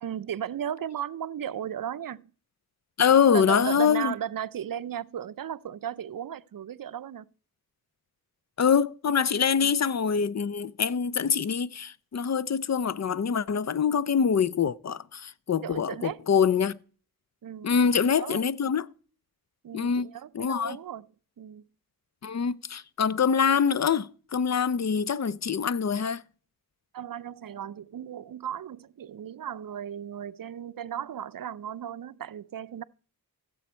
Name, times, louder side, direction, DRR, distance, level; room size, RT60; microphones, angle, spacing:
voice 1, 0.0-2.3 3.3-7.3 9.6-9.7 15.6-16.2 17.4-18.4 19.6-21.1 21.4-21.6 26.9-32.8, right 9 dB, 60° right, 0.5 m, -36 dB
voice 2, 3.0-4.1 8.6-16.8 17.6-18.9 19.7-20.8 22.2-26.2, left 7 dB, 45° left, 0.5 m, -25 dB
15.0 x 7.0 x 4.4 m
cardioid pair, 50°, 38 cm